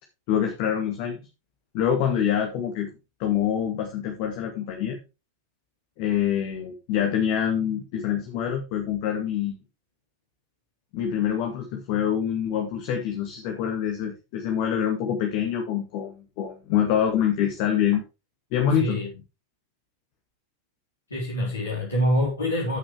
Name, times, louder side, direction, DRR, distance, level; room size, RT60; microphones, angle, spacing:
voice 1, 0.3-1.2 1.7-2.9 3.2-5.0 6.0-9.6 10.9-18.0 18.5-19.0, left 9 dB, 45° left, 2.3 m, -25 dB
voice 2, 18.8-19.1 21.1-22.8, equal, 75° left, 4.5 m, -25 dB
15.0 x 6.3 x 3.6 m
figure-of-eight pair, 90°, 0 cm